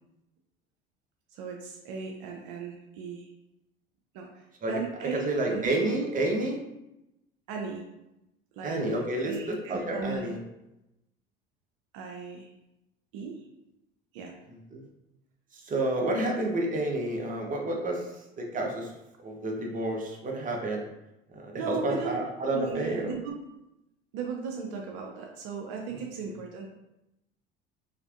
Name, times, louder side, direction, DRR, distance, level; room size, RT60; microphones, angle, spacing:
voice 1, 1.3-3.3 4.1-5.7 7.5-7.8 8.6-9.0 9.2-10.4 11.9-12.5 13.1-13.4 14.1-14.4 21.6-22.2 22.5-23.4 24.1-26.7, right 5 dB, 65° right, 1 dB, 0.5 m, -37 dB
voice 2, 5.1-6.6 8.6-10.4 14.7-14.8 15.6-18.0 18.4-18.9 19.2-20.8 21.3-23.2 25.9-26.0, right 1 dB, 30° right, 1 dB, 0.8 m, -29 dB
3.3 x 2.8 x 2.4 m, 0.91 s
hypercardioid pair, 65°, 29 cm